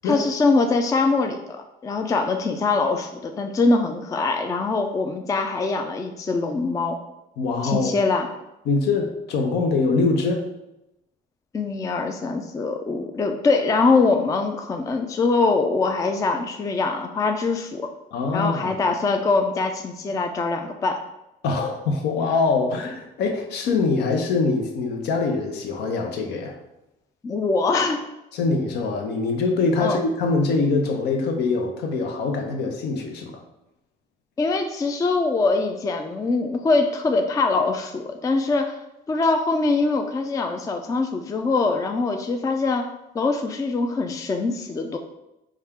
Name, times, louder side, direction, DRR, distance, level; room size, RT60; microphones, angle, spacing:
voice 1, 0.0-7.0 7.6-8.3 11.5-17.9 18.3-21.0 27.2-28.0 29.8-30.0 34.4-38.7 39.1-42.9 43.1-45.0, left 3 dB, 20° left, 5 dB, 0.3 m, -23 dB
voice 2, 7.4-7.9 8.6-10.4 18.1-18.8 21.4-26.6 28.3-33.3, left 3 dB, 80° left, 4 dB, 0.7 m, -23 dB
4.2 x 2.4 x 3.5 m, 0.91 s
cardioid pair, 110°, 17 cm